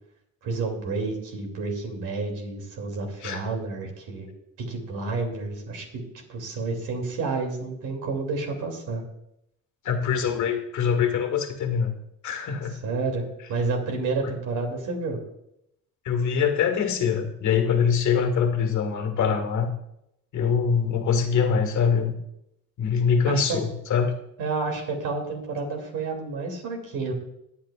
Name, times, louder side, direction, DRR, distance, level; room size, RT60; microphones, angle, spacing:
voice 1, 0.4-4.3 4.7-6.0 6.3-9.0 12.8-13.2 13.5-15.2 23.3-23.6 24.4-27.1, right 3 dB, 90° right, 2 dB, 2.8 m, -30 dB
voice 2, 9.9-11.9 12.2-12.8 16.1-19.7 20.3-22.1 22.8-24.1, left 6 dB, 70° left, 5 dB, 1.8 m, -23 dB
22.0 x 8.5 x 2.4 m, 0.80 s
cardioid pair, 90°, 30 cm